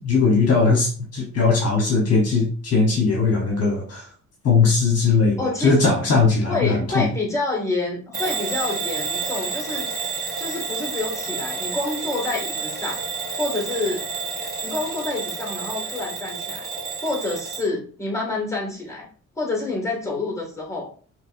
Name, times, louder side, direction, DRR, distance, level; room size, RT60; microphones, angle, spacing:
voice 1, 0.0-4.1 4.4-7.1, left 4 dB, 55° left, 0 dB, 1.1 m, -19 dB
voice 2, 5.4-5.8 6.5-9.9 10.4-13.0 13.4-14.1 14.6-16.7 17.0-19.1 19.4-20.9, left 2 dB, 10° left, -1 dB, 2.0 m, -28 dB
Bell / Alarm, 8.1-17.7, right 5 dB, 30° right, 2.1 m, -30 dB
5.2 x 3.2 x 2.6 m, 0.43 s
cardioid pair, 90°, 30 cm